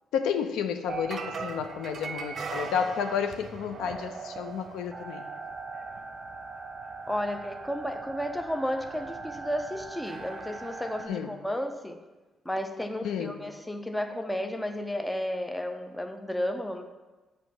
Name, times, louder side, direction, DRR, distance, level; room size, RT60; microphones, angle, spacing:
voice 1, 0.1-5.2 11.1-11.3 13.0-13.4, left 7 dB, 90° left, 7 dB, 0.5 m, -31 dB
sound 1, 0.9-11.1, right 4 dB, 50° right, 0.6 m, -39 dB
voice 2, 7.1-12.0 12.5-16.9, equal, 10° left, 7 dB, 0.5 m, -33 dB
7.6 x 3.0 x 6.0 m, 1.2 s
cardioid pair, 90°, 0 cm